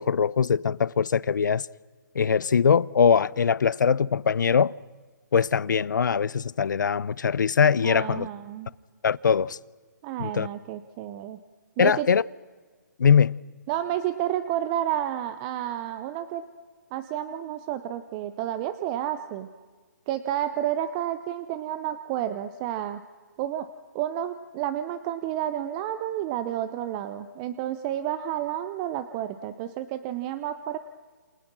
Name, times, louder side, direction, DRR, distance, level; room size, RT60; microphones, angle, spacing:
voice 1, 0.0-1.7 2.1-4.7 5.3-8.3 9.0-9.6 10.2-10.5 11.8-12.2 13.0-13.4, left 6 dB, 70° left, 0.7 m, -22 dB
voice 2, 7.8-8.7 10.0-11.4 11.8-12.1 13.7-16.4 16.9-19.5 20.1-23.0 23.4-23.7 23.9-30.8, right 11 dB, 20° right, 0.8 m, -30 dB
28.5 x 28.0 x 6.2 m
hypercardioid pair, 160°, 10 cm